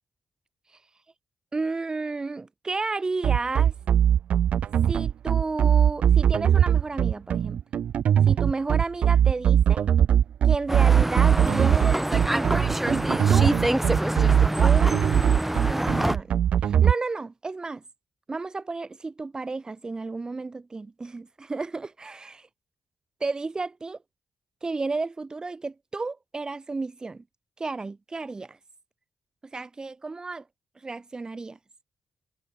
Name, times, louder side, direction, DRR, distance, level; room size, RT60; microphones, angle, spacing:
voice 1, 1.5-3.7 4.9-7.6 8.3-9.9 10.4-13.5 14.6-15.0 15.7-17.8 18.3-22.5 23.2-24.0 24.6-27.2 27.6-28.6 29.5-30.4 30.8-31.6, right 3 dB, 35° right, 3.6 m, -32 dB
sound 1, 3.2-16.9, right 9 dB, 70° right, 2.1 m, -20 dB
sound 2, 10.7-16.2, right 1 dB, 10° right, 4.1 m, -26 dB
hypercardioid pair, 45°, 2 cm